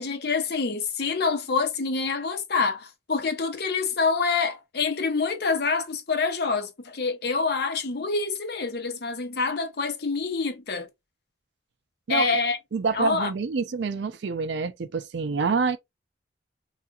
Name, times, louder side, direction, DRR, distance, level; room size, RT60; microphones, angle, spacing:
voice 1, 0.0-10.9 12.1-12.6 12.9-13.3, left 4 dB, 60° left, 0.7 m, -26 dB
voice 2, 12.7-15.8, right 4 dB, 70° right, 0.4 m, -27 dB
3.8 x 2.4 x 2.3 m
head